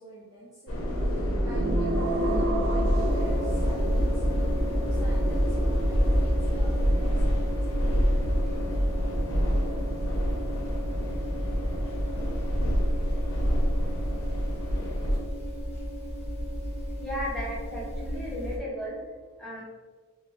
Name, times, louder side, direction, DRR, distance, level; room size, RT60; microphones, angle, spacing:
voice 1, 0.0-8.3, right 1 dB, 20° right, -8 dB, 0.6 m, -46 dB
sound 1, 0.7-15.2, equal, 70° left, 0.9 m, -27 dB
sound 2, 1.5-4.2, right 2 dB, 75° right, 0.5 m, -31 dB
sound 3, 3.1-18.6, equal, 30° left, 0.9 m, -33 dB
voice 2, 17.0-19.0 19.4-19.6, equal, ahead, -8 dB, 1.1 m, -35 dB
4.0 x 2.9 x 3.2 m, 1.4 s
head